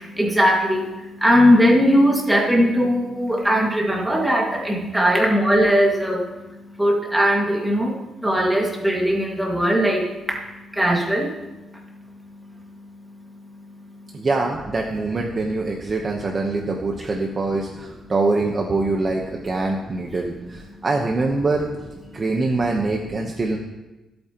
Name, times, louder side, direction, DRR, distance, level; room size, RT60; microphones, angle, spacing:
voice 1, 0.0-11.9 12.3-12.4 12.8-12.9 13.9-14.2, equal, 5° right, -1 dB, 2.0 m, -20 dB
voice 2, 14.1-21.7 22.1-23.6, right 3 dB, 25° right, 1 dB, 1.0 m, -24 dB
25.5 x 8.8 x 3.0 m, 1.1 s
cardioid pair, 175°, 0 cm